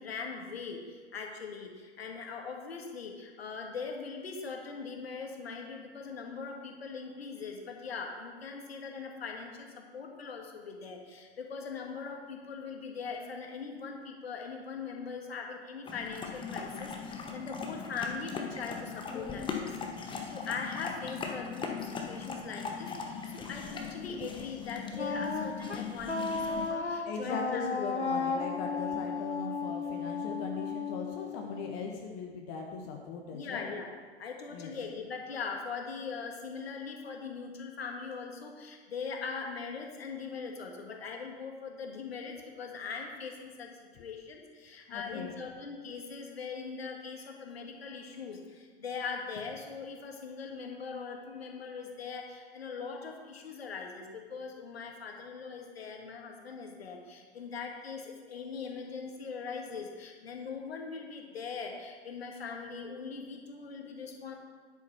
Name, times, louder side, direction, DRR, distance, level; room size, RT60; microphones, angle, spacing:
voice 1, 0.0-27.9 33.3-33.9 34.2-64.3, left 5 dB, 65° left, 2 dB, 1.7 m, -41 dB
sound 1, 15.9-26.7, left 5 dB, 15° left, 1.0 m, -39 dB
Wind instrument woodwind instrument, 25.0-31.9, left 4 dB, 90° left, 0.8 m, -34 dB
voice 2, 27.1-33.7 34.5-34.7 44.0-44.1 44.9-45.4, left 4 dB, 35° left, 2 dB, 1.1 m, -39 dB
9.8 x 8.3 x 4.5 m, 1.5 s
figure-of-eight pair, 95°, 33 cm